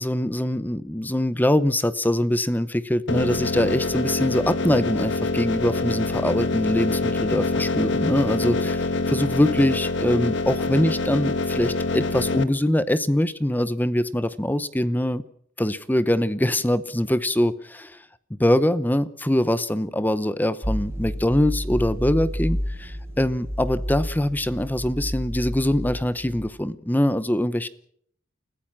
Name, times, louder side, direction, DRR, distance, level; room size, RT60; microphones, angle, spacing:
voice 1, 0.0-15.2 15.6-18.0 18.4-27.7, left 1 dB, 10° left, 15 dB, 0.8 m, -23 dB
sound 1, 3.1-12.4, left 3 dB, 65° left, 1.3 m, -25 dB
sound 2, 20.6-26.5, equal, 10° right, 5.5 m, -30 dB
29.5 x 15.0 x 6.0 m, 0.64 s
head